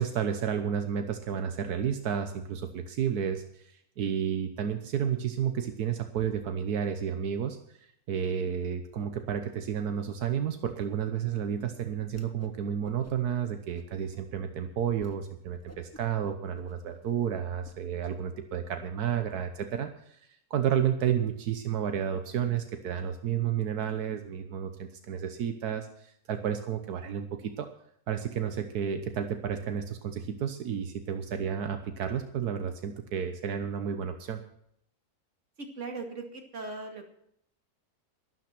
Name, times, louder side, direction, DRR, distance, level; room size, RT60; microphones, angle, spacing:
voice 1, 0.0-27.7 28.1-34.4, right 8 dB, 85° right, 7 dB, 1.5 m, -31 dB
Whoosh swoosh swish, 12.1-12.6 12.8-13.4 13.7-14.2 14.6-14.7 15.0-15.2 15.5-17.8, left 2 dB, 10° left, 1.1 m, -53 dB
voice 2, 35.6-37.1, right 3 dB, 50° right, 3 dB, 2.6 m, -39 dB
12.0 x 12.0 x 5.9 m, 0.72 s
omnidirectional pair, 1.6 m